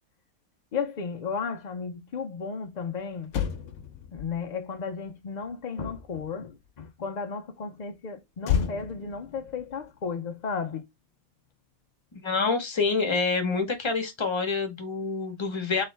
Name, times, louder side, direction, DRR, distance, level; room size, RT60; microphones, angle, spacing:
voice 1, 0.7-3.3 4.1-10.8, left 5 dB, 90° left, 0.3 m, -34 dB
Motor vehicle (road), 2.8-2.9 3.2-6.8 8.4-11.0 11.3-11.5, left 8 dB, 65° left, 0.9 m, -34 dB
voice 2, 12.1-15.8, left 4 dB, 25° left, 0.7 m, -27 dB
3.8 x 3.1 x 3.2 m
omnidirectional pair, 1.5 m